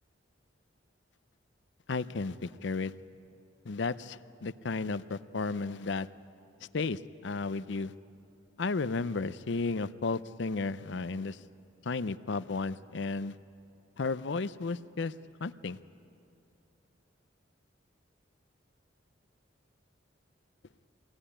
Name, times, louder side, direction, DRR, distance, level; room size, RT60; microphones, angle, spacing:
voice 1, 1.9-2.9 3.6-6.1 6.7-7.9 8.6-11.4 11.8-13.4 14.0-15.1 15.4-15.8, left 4 dB, 65° left, 15 dB, 0.6 m, -33 dB
23.5 x 17.5 x 10.0 m, 2.7 s
head